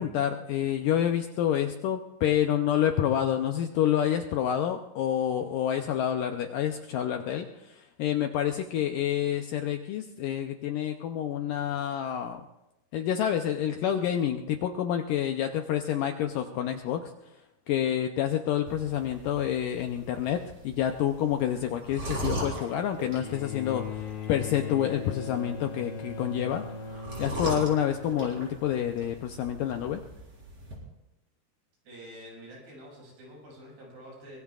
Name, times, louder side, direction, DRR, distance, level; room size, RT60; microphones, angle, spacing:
voice 1, 0.0-12.4 12.9-17.1 17.7-26.6 27.2-30.0, left 10 dB, 80° left, 5 dB, 2.0 m, -28 dB
sound 1, 18.7-30.8, right 1 dB, 40° right, 5.3 m, -40 dB
Bowed string instrument, 23.2-28.6 29.8-29.9, left 6 dB, 50° left, 2.0 m, -39 dB
voice 2, 31.9-34.4, equal, 75° right, -3 dB, 8.7 m, -47 dB
24.0 x 21.5 x 2.4 m, 0.92 s
omnidirectional pair, 4.5 m